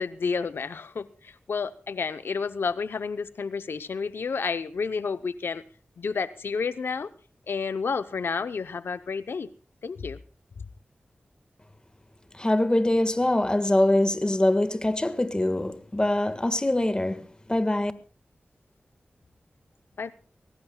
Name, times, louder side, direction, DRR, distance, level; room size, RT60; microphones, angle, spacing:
voice 1, 0.0-5.6 6.0-7.1 7.5-9.5 9.8-10.2 20.0-20.1, left 5 dB, 90° left, 0.6 m, -30 dB
voice 2, 12.4-17.9, left 1 dB, 25° left, 1.5 m, -24 dB
24.0 x 18.0 x 2.2 m
wide cardioid pair, 60°, 4 cm